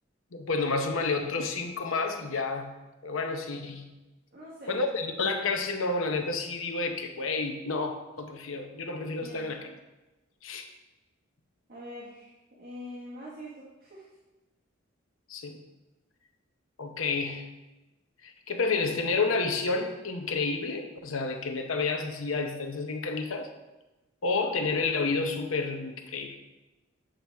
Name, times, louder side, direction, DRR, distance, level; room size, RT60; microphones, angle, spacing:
voice 1, 0.3-2.7 3.0-3.9 4.7-9.7 10.4-10.7 15.3-15.6 16.8-17.5 18.2-23.5 24.2-26.4, left 3 dB, 90° left, 5 dB, 0.8 m, -30 dB
voice 2, 4.3-4.8 9.2-9.7 11.7-14.1, equal, 50° right, -6 dB, 1.5 m, -44 dB
7.9 x 5.8 x 3.4 m, 1.1 s
head